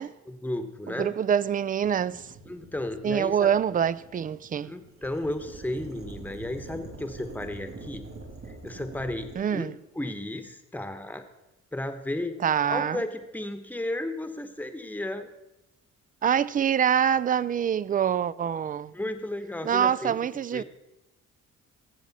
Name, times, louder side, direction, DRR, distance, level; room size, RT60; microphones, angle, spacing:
voice 1, 0.3-1.2 2.5-3.5 4.6-8.0 8.6-9.7 9.9-11.2 11.7-12.4 12.7-15.3 18.9-20.2 20.5-20.6, left 1 dB, 5° left, 1.0 m, -33 dB
voice 2, 1.0-2.2 3.0-4.7 9.4-9.7 12.4-13.0 16.2-18.9 19.6-20.6, right 8 dB, 30° right, 0.4 m, -25 dB
sound 1, 1.8-9.4, right 2 dB, 50° right, 2.9 m, -45 dB
14.5 x 7.4 x 4.1 m
cardioid pair, 90°, 30 cm